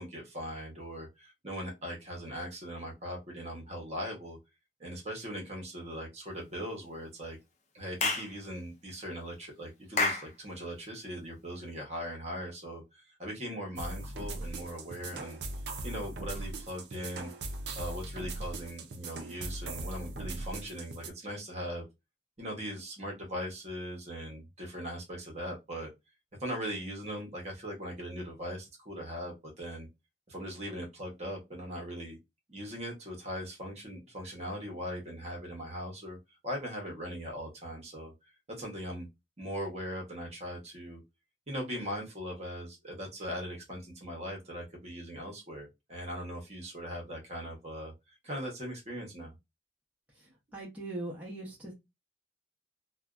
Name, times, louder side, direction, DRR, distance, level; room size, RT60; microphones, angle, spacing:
voice 1, 0.0-4.4 4.8-7.4 7.7-15.4 15.8-17.3 17.7-21.9 22.4-25.9 26.4-29.9 30.3-32.2 32.5-36.2 36.4-38.1 38.5-39.1 39.4-41.0 41.5-47.9 48.2-49.3, equal, 40° right, 0.9 m, -40 dB
Clapping / Chirp tweet, 8.0-8.3 10.0-10.3, left 3 dB, 40° left, 0.4 m, -28 dB
sound 1, 13.8-21.1, right 2 dB, 70° right, 0.5 m, -40 dB
voice 2, 50.2-51.7, right 2 dB, 10° right, 0.8 m, -41 dB
2.5 x 2.2 x 2.4 m
head